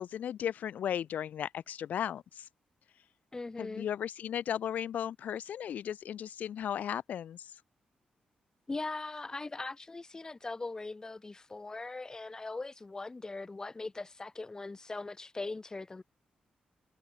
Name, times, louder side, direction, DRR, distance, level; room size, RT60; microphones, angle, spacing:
voice 1, 0.0-2.5 3.6-7.6, left 9 dB, 80° left, 2.6 m, -36 dB
voice 2, 3.3-3.9 8.7-16.0, left 3 dB, 25° left, 5.0 m, -40 dB
cardioid pair, 100°, 3 cm